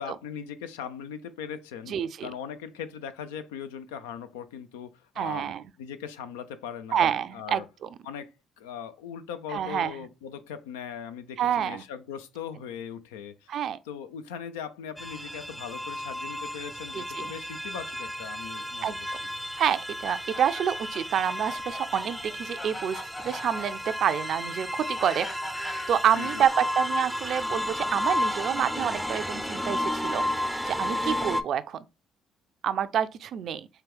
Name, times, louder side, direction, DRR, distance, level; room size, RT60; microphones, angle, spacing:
voice 1, 0.0-7.7 8.0-18.9 19.4-19.5 26.1-26.5, left 8 dB, 80° left, 0.4 m, -40 dB
voice 2, 1.9-2.3 5.2-5.6 6.9-7.9 9.5-9.9 11.4-11.8 13.5-13.8 16.9-17.2 18.8-19.2 19.6-25.3 25.9-31.8 32.6-33.7, right 9 dB, 60° right, 0.4 m, -28 dB
sound 1, 15.0-31.4, left 1 dB, ahead, 0.5 m, -32 dB
Fowl, 20.3-27.0 27.8-29.8, left 1 dB, 40° left, 2.0 m, -42 dB
4.6 x 2.3 x 3.4 m
hypercardioid pair, 50°, 0 cm